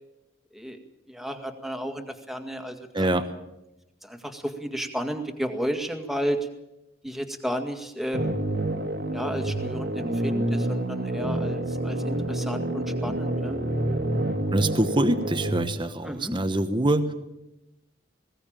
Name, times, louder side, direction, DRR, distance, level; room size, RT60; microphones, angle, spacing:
voice 1, 1.1-3.1 4.0-6.4 7.0-8.4 9.1-13.6 16.0-16.3, equal, ahead, 6 dB, 2.0 m, -32 dB
voice 2, 2.9-3.3 14.5-17.1, right 1 dB, 25° right, 7 dB, 1.1 m, -24 dB
sound 1, 8.1-15.6, right 1 dB, 55° right, 2.0 m, -28 dB
20.5 x 17.0 x 8.9 m, 0.92 s
head